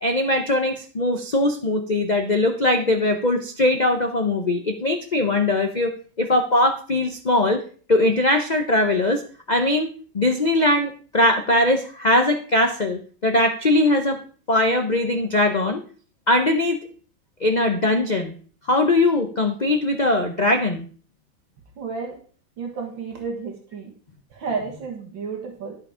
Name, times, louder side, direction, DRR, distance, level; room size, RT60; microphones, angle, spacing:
voice 1, 0.0-5.9 6.2-7.6 7.9-9.2 9.5-9.9 10.1-14.2 14.5-15.8 16.3-16.8 17.4-18.3 18.7-20.9, left 1 dB, 70° left, 5 dB, 0.4 m, -20 dB
voice 2, 21.8-22.2 22.6-23.9 24.3-25.8, right 5 dB, 75° right, 2 dB, 2.2 m, -31 dB
11.0 x 6.4 x 4.9 m, 0.42 s
omnidirectional pair, 2.1 m